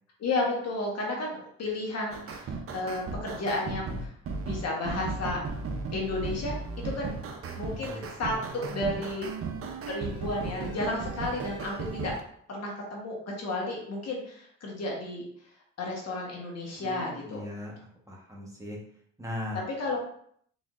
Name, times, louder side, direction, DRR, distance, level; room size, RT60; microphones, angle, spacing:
voice 1, 0.2-3.9 4.5-5.4 5.9-6.5 6.9-7.1 7.6-9.3 9.9-12.1 12.5-15.2 15.8-17.4 19.8-20.0, left 2 dB, 55° left, -2 dB, 1.3 m, -32 dB
sound 1, 2.1-12.2, right 4 dB, 50° right, 0.7 m, -36 dB
voice 2, 16.8-17.7 18.1-18.8 19.2-19.6, left 1 dB, 10° right, -4 dB, 1.2 m, -38 dB
4.1 x 3.5 x 2.5 m, 0.65 s
cardioid pair, 90°, 30 cm